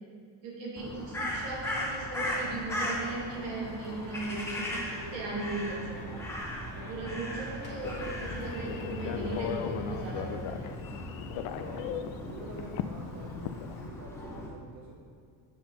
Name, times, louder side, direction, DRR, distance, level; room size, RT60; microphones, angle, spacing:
voice 1, 0.4-6.1 6.7-10.7, right 3 dB, 65° right, -3 dB, 2.0 m, -37 dB
Crow, 0.8-14.5, left 1 dB, 5° left, 0.6 m, -38 dB
sound 1, 2.1-10.3, left 1 dB, 20° left, 1.5 m, -48 dB
Telephone, 7.8-13.9, left 9 dB, 65° left, 0.6 m, -38 dB
voice 2, 11.6-15.0, right 3 dB, 35° right, -2 dB, 0.7 m, -48 dB
7.7 x 5.8 x 4.0 m, 2.3 s
cardioid pair, 175°, 48 cm